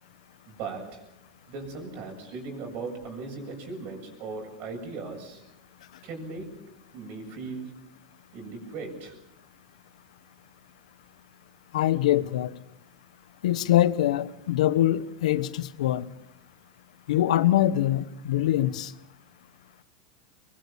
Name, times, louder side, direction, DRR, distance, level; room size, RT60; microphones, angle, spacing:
voice 1, 0.5-1.0 1.5-5.4 6.0-6.6 6.9-7.8 8.3-9.2, right 4 dB, 50° right, 7.7 m, -38 dB
voice 2, 11.7-12.6 13.4-16.1 17.1-18.9, left 13 dB, 85° left, 1.1 m, -23 dB
23.0 x 22.5 x 7.1 m
supercardioid pair, 130°, 4 cm